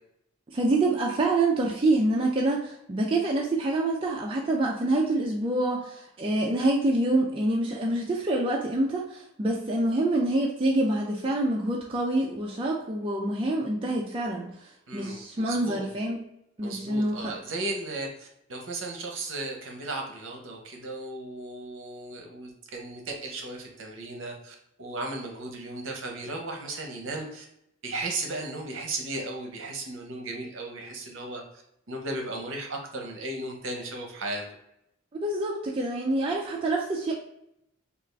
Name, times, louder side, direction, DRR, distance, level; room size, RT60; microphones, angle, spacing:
voice 1, 0.5-16.2 16.6-17.4 35.2-37.1, right 2 dB, 25° right, -2 dB, 0.3 m, -26 dB
voice 2, 14.9-15.9 16.6-27.4 27.8-31.6 31.9-34.4, right 2 dB, 65° right, 2 dB, 0.8 m, -36 dB
3.5 x 2.4 x 3.2 m, 0.80 s
head